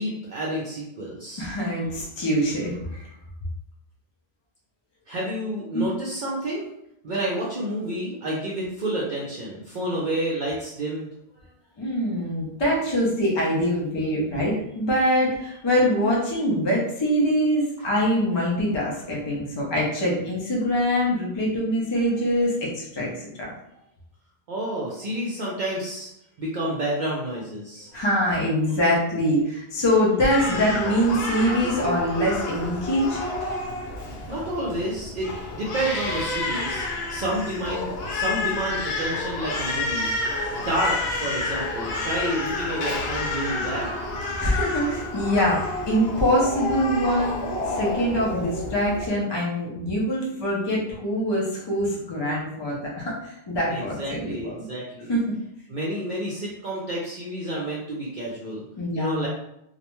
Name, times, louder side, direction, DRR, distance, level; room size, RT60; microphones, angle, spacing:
voice 1, 0.0-1.5 5.1-6.7 7.0-11.1 24.5-26.1 26.4-27.9 34.3-40.1 40.5-43.9 53.7-55.1 55.7-58.6 58.9-59.3, right 1 dB, 60° right, -4 dB, 0.6 m, -29 dB
voice 2, 1.4-3.1 5.7-5.9 11.8-23.5 27.9-33.5 43.4-44.0 44.4-54.6 55.1-55.2 58.8-59.3, equal, 40° left, -4 dB, 0.4 m, -24 dB
Crying sobbing, 30.3-49.1, left 2 dB, 75° left, 0.8 m, -29 dB
2.3 x 2.1 x 2.9 m, 0.80 s
omnidirectional pair, 1.1 m